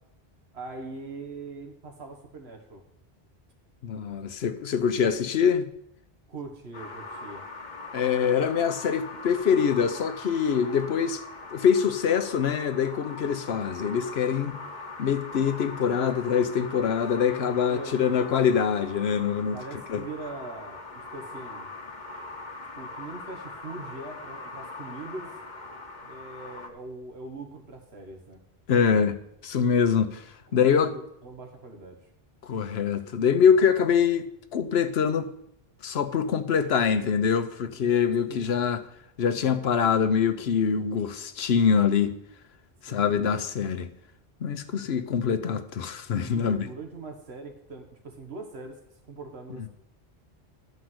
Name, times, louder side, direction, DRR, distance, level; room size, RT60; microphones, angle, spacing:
voice 1, 0.5-2.8 6.3-7.5 17.7-18.3 19.5-21.7 22.8-25.3 26.0-28.4 30.5-32.0 38.3-38.6 42.9-43.1 46.1-48.8 49.1-49.7, right 3 dB, 85° right, 1.7 m, -41 dB
voice 2, 3.8-5.7 7.9-11.2 11.5-14.6 15.0-19.6 19.9-20.0 28.7-29.2 29.4-30.2 30.5-30.9 32.4-34.3 34.5-35.3 35.8-38.8 39.2-42.1 42.8-43.9 44.4-46.7, left 7 dB, 85° left, 1.0 m, -24 dB
sound 1, 6.7-26.7, left 3 dB, 50° left, 1.3 m, -41 dB
11.5 x 5.2 x 7.8 m
omnidirectional pair, 1.0 m